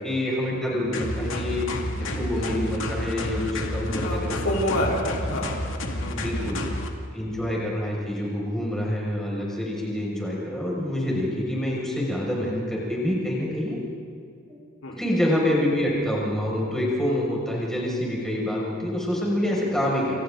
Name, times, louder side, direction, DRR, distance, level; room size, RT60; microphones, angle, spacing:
voice 1, 0.0-1.6 2.0-4.4 6.1-6.6 7.1-13.8 15.0-20.2, left 1 dB, ahead, -5 dB, 6.1 m, -26 dB
sound 1, 0.9-6.9, left 1 dB, 70° left, 2.4 m, -30 dB
voice 2, 4.0-5.6 6.0-6.6 7.4-7.6 14.8-15.0 19.6-19.8, equal, 90° left, -2 dB, 4.3 m, -29 dB
30.0 x 28.0 x 3.9 m, 2.5 s
head